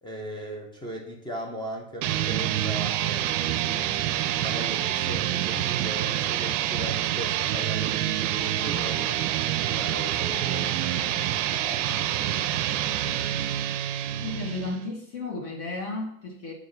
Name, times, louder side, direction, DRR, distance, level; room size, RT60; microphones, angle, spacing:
voice 1, 0.0-3.9 4.3-9.2 9.7-12.3, equal, 10° left, 1 dB, 0.7 m, -38 dB
sound 1, 2.0-14.8, right 12 dB, 60° right, 0.5 m, -27 dB
voice 2, 14.2-16.5, left 3 dB, 35° left, -1 dB, 1.5 m, -33 dB
7.5 x 4.8 x 2.7 m, 0.74 s
hypercardioid pair, 115°, 43 cm